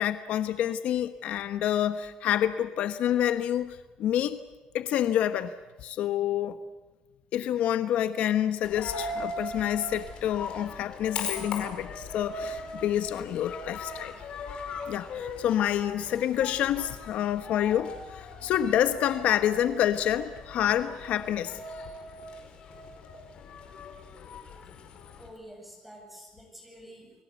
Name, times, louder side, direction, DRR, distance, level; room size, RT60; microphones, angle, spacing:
voice 1, 0.0-4.4 4.7-5.5 5.8-6.6 7.3-14.1 14.9-21.6, left 11 dB, 60° left, 10 dB, 1.2 m, -28 dB
Coin (dropping), 8.6-25.3, left 3 dB, 45° left, 5.2 m, -39 dB
voice 2, 25.1-27.1, equal, 5° right, 2 dB, 7.9 m, -48 dB
30.0 x 21.5 x 8.3 m, 1.1 s
cardioid pair, 155°, 2 cm